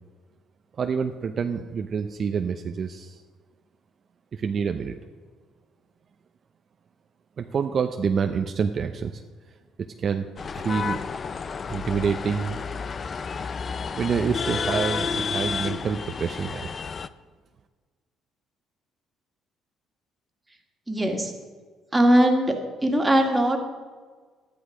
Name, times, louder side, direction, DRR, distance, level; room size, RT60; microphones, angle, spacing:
voice 1, 0.8-3.2 4.3-4.9 7.4-9.2 10.0-10.3 10.5-11.0 11.7-12.6 14.0-16.7, right 6 dB, 50° right, 6 dB, 0.6 m, -27 dB
sound 1, 10.4-17.1, left 5 dB, 40° left, 0.5 m, -31 dB
voice 2, 20.9-21.3 21.9-22.5 22.8-23.6, right 1 dB, 15° right, 2 dB, 2.0 m, -20 dB
12.0 x 10.5 x 5.0 m, 1.5 s
supercardioid pair, 80°, 0 cm